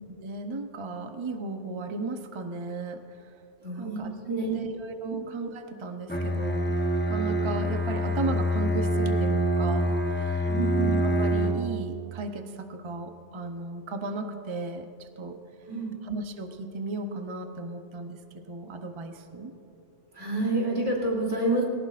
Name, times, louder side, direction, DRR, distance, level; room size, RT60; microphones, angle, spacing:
voice 1, 0.1-3.3 3.7-6.8 7.1-10.5 10.8-15.4 16.0-18.2 18.4-19.5, right 3 dB, 30° right, 6 dB, 0.7 m, -35 dB
voice 2, 3.6-4.0 4.3-4.6 10.5-10.9 15.7-15.9 20.2-21.6, right 2 dB, 85° right, -3 dB, 3.3 m, -28 dB
Bowed string instrument, 6.1-11.8, equal, 10° left, 0.7 m, -26 dB
19.5 x 18.0 x 2.5 m, 2.5 s
omnidirectional pair, 1.2 m